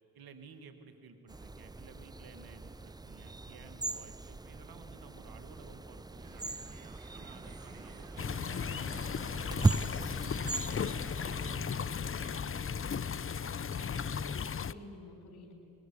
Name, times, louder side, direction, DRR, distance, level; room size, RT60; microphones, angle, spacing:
voice 1, 0.1-9.1 9.5-14.0, right 5 dB, 80° right, 8 dB, 2.1 m, -55 dB
sound 1, 1.3-11.7, right 2 dB, 10° right, 0.5 m, -38 dB
sound 2, 6.2-11.7, right 5 dB, 55° right, 3.0 m, -59 dB
sound 3, 8.2-14.7, left 6 dB, 35° left, 0.7 m, -36 dB
voice 2, 14.6-15.5, left 2 dB, 80° left, 3 dB, 4.3 m, -51 dB
22.0 x 21.5 x 8.5 m, 3.0 s
supercardioid pair, 45°, 37 cm